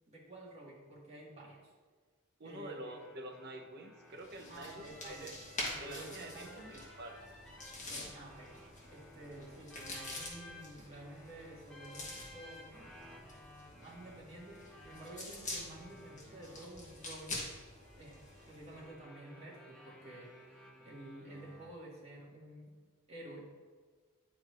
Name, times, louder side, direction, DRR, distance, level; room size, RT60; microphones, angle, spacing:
voice 1, 0.1-1.7 2.4-3.0 4.5-6.9 7.8-8.6 8.9-13.1 13.7-17.4 17.9-22.8 23.1-23.5, right 1 dB, 30° right, -6 dB, 1.8 m, -51 dB
voice 2, 2.4-5.3 5.8-7.2, right 1 dB, 50° right, 2 dB, 0.8 m, -47 dB
sound 1, 2.8-21.7, left 1 dB, 5° left, 1.2 m, -57 dB
sound 2, 4.2-18.8, left 2 dB, 35° left, 1.4 m, -47 dB
10.5 x 4.5 x 2.6 m, 1.5 s
head